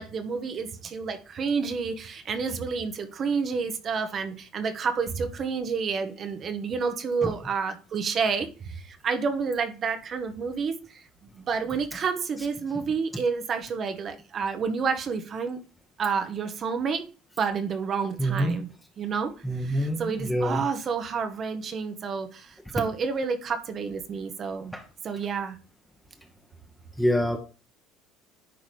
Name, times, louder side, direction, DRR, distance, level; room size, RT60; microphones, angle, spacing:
voice 1, 0.0-10.7 11.4-15.6 16.0-17.1 17.4-18.7 19.0-19.3 19.6-24.7 25.0-25.6, right 5 dB, 45° right, 1.0 m, -29 dB
voice 2, 18.2-18.6 19.4-20.6 24.7-24.8 27.0-27.4, equal, 5° left, 1.1 m, -26 dB
10.0 x 4.0 x 3.3 m
hypercardioid pair, 75°, 0 cm